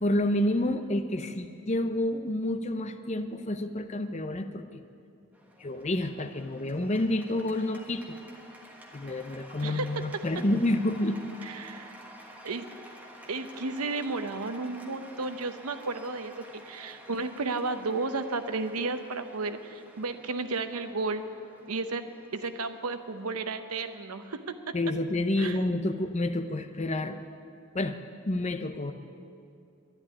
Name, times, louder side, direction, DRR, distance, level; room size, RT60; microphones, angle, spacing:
voice 1, 0.0-4.6 5.6-8.2 8.9-11.2 24.7-27.2 27.7-28.0 28.2-28.9, left 1 dB, 30° left, 8 dB, 0.7 m, -29 dB
Cheering / Applause, 5.3-24.6, equal, 5° right, 1.3 m, -51 dB
voice 2, 9.6-10.4 11.4-11.9 12.4-12.7 13.3-21.2 21.6-22.1 22.3-24.8 25.4-25.6, right 3 dB, 90° right, 9 dB, 0.9 m, -33 dB
11.5 x 11.0 x 9.9 m, 2.5 s
head